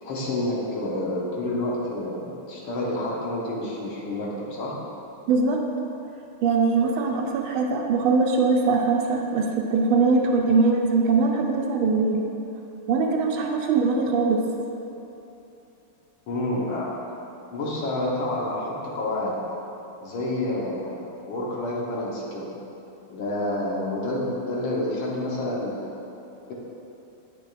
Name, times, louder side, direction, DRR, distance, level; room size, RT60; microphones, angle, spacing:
voice 1, 0.0-4.8 16.3-17.0 17.5-19.4 20.0-22.5 23.1-25.9, left 1 dB, 75° left, -4 dB, 1.9 m, -29 dB
voice 2, 5.3-5.6 6.4-12.2 12.9-14.4, right 4 dB, 80° right, 1 dB, 1.4 m, -22 dB
8.9 x 6.2 x 2.4 m, 3.0 s
omnidirectional pair, 2.4 m